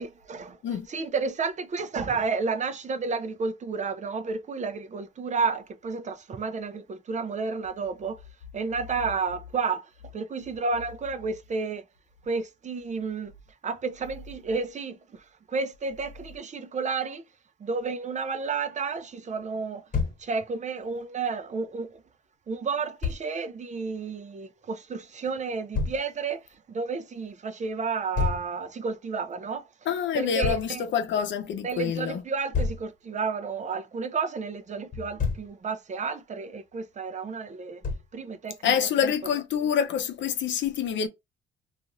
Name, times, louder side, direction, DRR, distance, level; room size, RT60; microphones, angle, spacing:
voice 1, 0.0-0.6 0.9-8.2 8.5-9.8 10.1-11.8 12.3-13.3 13.6-14.9 15.5-17.2 17.6-19.8 20.2-21.9 22.5-26.4 26.7-29.6 30.1-30.9 31.6-37.8 38.1-39.1, right 4 dB, 35° right, 0.5 m, -31 dB
Thump thud, 19.9-20.2 23.0-23.2 25.7-26.0 28.2-28.5 30.4-30.7 32.5-32.9 34.9-35.5 37.8-38.2, left 4 dB, 45° left, 1.3 m, -28 dB
voice 2, 29.9-32.2 38.6-41.1, left 8 dB, 70° left, 0.7 m, -27 dB
2.5 x 2.5 x 2.9 m
cardioid pair, 90°, 20 cm